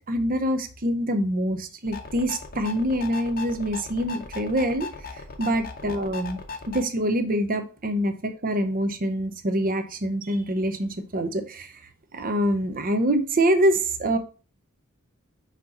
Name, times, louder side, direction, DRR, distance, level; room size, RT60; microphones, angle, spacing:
voice 1, 0.1-4.9 5.4-6.4 6.7-11.7 12.1-14.2, right 1 dB, 40° right, 8 dB, 0.7 m, -25 dB
sound 1, 1.9-6.8, left 4 dB, 40° left, 0.8 m, -38 dB
6.0 x 2.9 x 5.3 m, 0.36 s
head